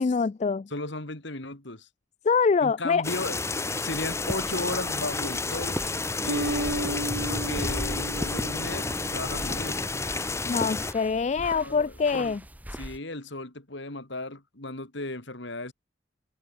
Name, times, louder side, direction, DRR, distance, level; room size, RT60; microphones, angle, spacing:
voice 1, 0.0-0.7 2.2-3.0 10.5-12.4, left 5 dB, 35° left, 0.3 m, -24 dB
voice 2, 0.7-1.9 2.6-5.8 6.2-9.8 11.4-12.3 12.7-15.7, left 2 dB, 60° left, 2.6 m, -36 dB
sound 1, 3.0-10.9, left 3 dB, 15° left, 0.9 m, -31 dB
sound 2, 3.9-13.0, equal, 10° right, 2.8 m, -39 dB
sound 3, 6.3-9.6, right 1 dB, 65° right, 2.4 m, -33 dB
head